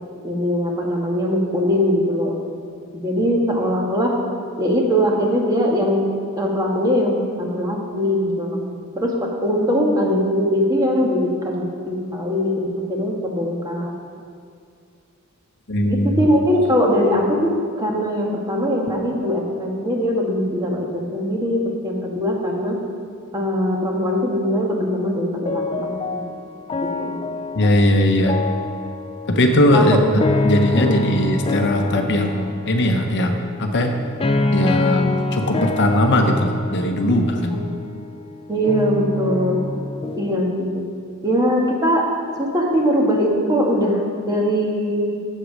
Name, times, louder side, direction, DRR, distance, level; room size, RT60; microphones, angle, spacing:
voice 1, 0.2-2.3 2.9-4.1 4.6-6.0 6.4-13.9 15.8-22.8 23.3-26.2 26.8-27.2 29.7-30.1 30.8-31.0 37.5-37.6 38.5-39.6 40.1-40.8 41.2-42.0 42.4-45.2, equal, 15° right, -1 dB, 1.4 m, -21 dB
voice 2, 15.7-16.2 27.5-28.4 29.3-30.0 30.4-33.9 34.5-37.6, left 1 dB, 55° left, 4 dB, 0.8 m, -19 dB
sound 1, 25.5-40.4, left 2 dB, 25° left, 0.4 m, -26 dB
8.2 x 7.5 x 6.2 m, 2.4 s
head